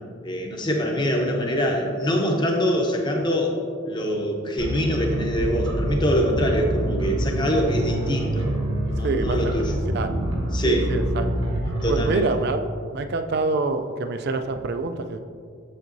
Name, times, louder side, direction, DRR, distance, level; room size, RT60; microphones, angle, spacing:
voice 1, 0.2-3.6 3.8-8.5 8.9-9.7 10.5-10.9 11.8-12.3, equal, 20° left, 1 dB, 0.8 m, -24 dB
sound 1, 4.6-12.2, right 1 dB, 85° right, 1.4 m, -26 dB
voice 2, 9.0-9.5 9.9-10.2 10.6-11.3 11.9-12.7 12.9-15.2, right 3 dB, 55° right, 8 dB, 0.4 m, -26 dB
7.5 x 7.2 x 2.7 m, 2.2 s
head